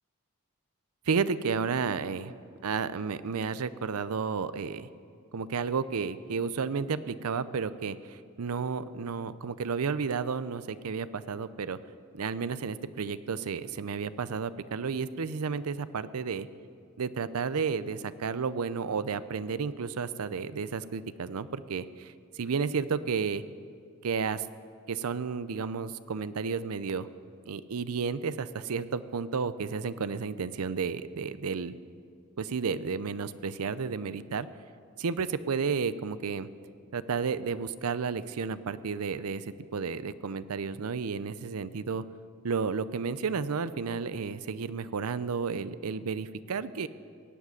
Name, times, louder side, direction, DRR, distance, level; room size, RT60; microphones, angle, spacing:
voice 1, 1.1-2.3 2.6-4.9 5.3-11.8 12.1-16.5 17.0-23.4 24.0-24.4 24.9-27.1 27.5-31.8 32.4-34.5 35.0-36.5 36.9-42.0 42.4-46.9, right 5 dB, 80° right, 15 dB, 0.6 m, -32 dB
17.0 x 7.5 x 9.5 m, 2.3 s
head